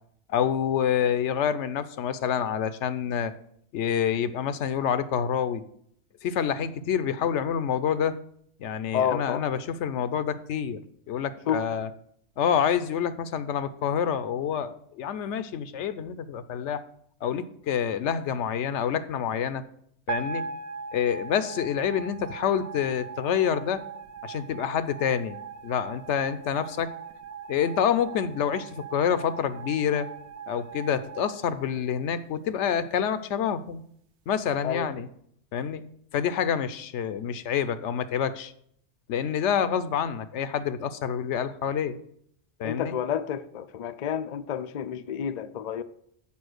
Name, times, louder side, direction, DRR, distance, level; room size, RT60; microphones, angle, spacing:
voice 1, 0.3-3.3 3.7-5.6 6.2-8.1 8.6-10.8 11.1-11.9 12.4-16.8 17.2-19.6 20.1-20.4 20.9-23.9 24.2-25.4 25.6-26.9 27.5-30.1 30.5-33.8 34.3-35.1 35.5-35.8 36.1-38.5 39.1-42.0 42.6-42.9, left 8 dB, 80° left, 0.9 m, -27 dB
voice 2, 8.9-9.5 11.5-11.7 34.6-34.9 42.6-45.8, left 8 dB, 60° left, 0.4 m, -29 dB
sound 1, 20.1-32.4, right 5 dB, 75° right, 0.9 m, -40 dB
7.0 x 5.6 x 6.4 m
omnidirectional pair, 1.2 m